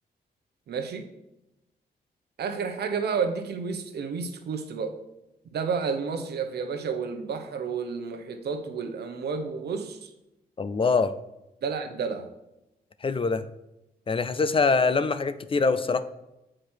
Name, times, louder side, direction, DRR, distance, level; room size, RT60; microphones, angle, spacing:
voice 1, 0.7-1.1 2.4-4.9 5.5-10.1 11.6-12.3, right 5 dB, 75° right, 7 dB, 0.9 m, -31 dB
voice 2, 10.6-11.1 13.0-13.4 14.1-16.0, left 4 dB, 35° left, 13 dB, 0.5 m, -24 dB
7.7 x 5.0 x 4.4 m, 0.92 s
cardioid pair, 90°, 17 cm